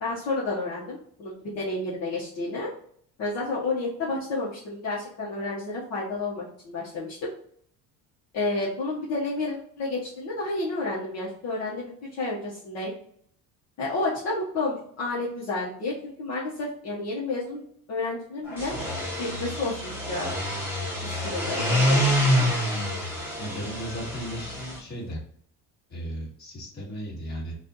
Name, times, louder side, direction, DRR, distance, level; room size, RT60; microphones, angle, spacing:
voice 1, 0.0-2.7 3.2-7.2 8.3-11.9 12.2-12.9 13.8-17.6 17.9-18.7 19.2-20.3 21.0-22.0 22.2-22.4, left 2 dB, 45° left, -6 dB, 1.1 m, -30 dB
sound 1, 18.5-24.8, equal, 5° right, 1.0 m, -27 dB
voice 2, 23.4-25.2 25.9-27.5, equal, 30° left, -4 dB, 1.5 m, -35 dB
4.2 x 2.5 x 3.9 m, 0.62 s
cardioid pair, 165°, 35 cm